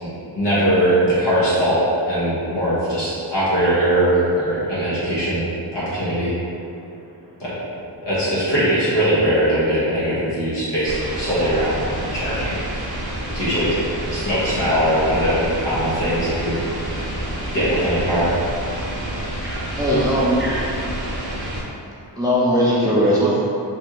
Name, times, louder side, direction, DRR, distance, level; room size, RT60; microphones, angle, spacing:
voice 1, 0.0-5.5 5.7-6.3 7.4-7.5 8.0-11.8 12.1-12.6 13.3-13.8 14.1-16.6 16.9-17.0 17.5-18.3, right 1 dB, 70° left, -10 dB, 1.3 m, -20 dB
voice 2, 6.6-7.4 18.7-21.0, right 1 dB, 25° right, -8 dB, 0.8 m, -36 dB
sound 1, 10.9-21.6, right 1 dB, 55° right, 0.8 m, -28 dB
voice 3, 19.8-20.3 22.2-23.4, equal, 10° right, -7 dB, 0.3 m, -18 dB
3.2 x 2.6 x 2.9 m, 2.7 s
wide cardioid pair, 125°, 43 cm